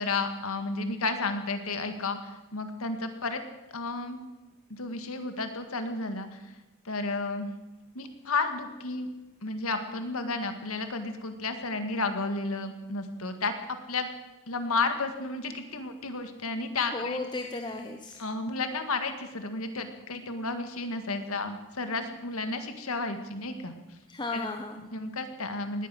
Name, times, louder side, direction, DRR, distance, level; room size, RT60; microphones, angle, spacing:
voice 1, 0.0-3.4 3.7-4.2 4.7-6.4 6.9-7.5 8.0-9.1 9.4-14.1 14.5-17.2 18.2-23.8 24.3-24.5 24.9-25.9, left 3 dB, 85° left, 7 dB, 1.8 m, -32 dB
voice 2, 16.9-18.2 24.1-24.8, left 2 dB, 20° left, 3 dB, 0.9 m, -35 dB
19.5 x 9.7 x 7.7 m, 1.1 s
head